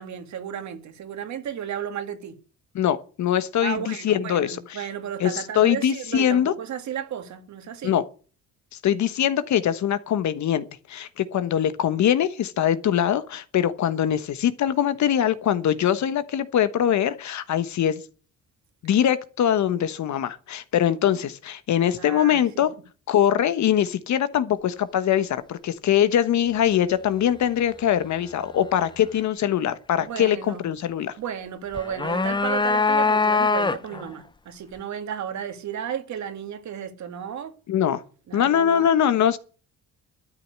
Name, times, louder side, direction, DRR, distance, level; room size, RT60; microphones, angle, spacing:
voice 1, 0.0-2.4 3.6-7.9 22.0-22.7 30.0-30.6 31.2-37.5 38.3-38.9, right 8 dB, 65° right, 2.3 m, -33 dB
voice 2, 2.7-4.8 5.2-6.5 7.8-8.0 8.8-18.0 18.8-22.7 23.1-31.1 37.7-38.0 38.3-39.4, left 10 dB, 70° left, 1.3 m, -22 dB
sound 1, 31.7-34.1, left 4 dB, 15° left, 0.7 m, -22 dB
12.5 x 7.3 x 9.6 m
cardioid pair, 90°, 30 cm